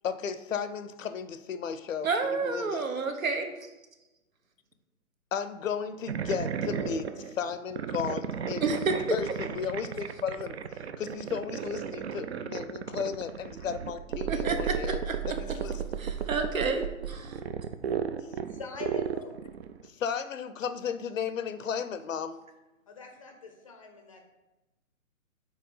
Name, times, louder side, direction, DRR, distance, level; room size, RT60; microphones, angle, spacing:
voice 1, 0.0-2.8 5.3-8.7 9.1-15.8 19.8-22.4, left 7 dB, 65° left, 12 dB, 0.6 m, -34 dB
voice 2, 2.0-3.5 8.6-9.2 14.3-15.6 16.0-17.4, right 4 dB, 70° right, 6 dB, 1.1 m, -30 dB
sound 1, 6.1-19.9, right 7 dB, 50° right, 0.4 m, -34 dB
voice 3, 18.5-19.4 22.9-24.2, left 5 dB, 25° left, 4 dB, 0.5 m, -44 dB
4.7 x 4.4 x 5.4 m, 1.0 s
figure-of-eight pair, 140°, 42 cm